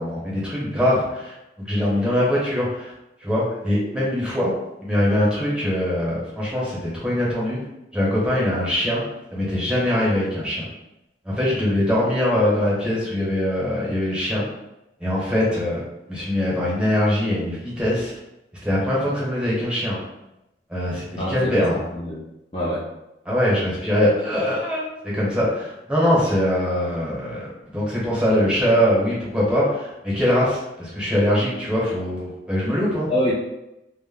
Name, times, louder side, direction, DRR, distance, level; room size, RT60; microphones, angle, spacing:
voice 1, 0.0-2.9 3.2-4.5 4.8-7.6 7.9-9.0 9.3-10.6 11.2-14.5 15.0-18.1 18.6-20.0 20.7-21.7 23.2-33.1, left 1 dB, 5° right, -7 dB, 0.8 m, -22 dB
voice 2, 21.2-22.2 22.5-22.9 33.1-33.3, left 1 dB, 30° left, -7 dB, 0.4 m, -25 dB
2.1 x 2.1 x 3.6 m, 0.90 s
head